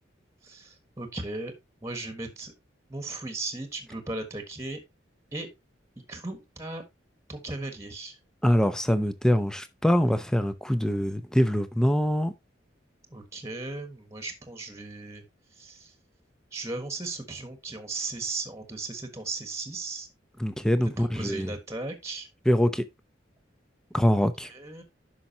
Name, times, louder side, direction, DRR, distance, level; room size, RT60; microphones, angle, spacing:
voice 1, 0.4-1.5 1.8-2.5 2.9-4.8 5.3-5.5 6.1-6.8 7.3-8.2 13.1-15.2 15.5-15.9 16.5-20.1 21.0-22.3 24.4-24.8, right 3 dB, 15° right, 1.4 m, -36 dB
voice 2, 8.4-12.3 20.4-21.5 22.5-22.8 23.9-24.5, equal, 5° left, 0.7 m, -24 dB
9.8 x 6.0 x 2.8 m
head